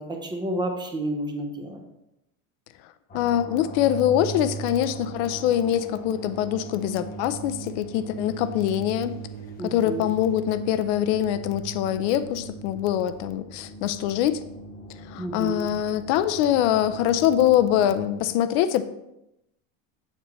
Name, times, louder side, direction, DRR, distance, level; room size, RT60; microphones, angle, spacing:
voice 1, 0.0-1.8 9.6-10.1 15.2-15.7, right 1 dB, 10° right, 3 dB, 0.7 m, -30 dB
voice 2, 3.1-9.1 9.6-14.4 15.1-18.8, left 11 dB, 60° left, 12 dB, 0.6 m, -24 dB
sound 1, 3.1-18.1, right 3 dB, 20° left, 1.1 m, -39 dB
8.0 x 7.4 x 3.1 m, 0.87 s
cardioid pair, 170°, 40 cm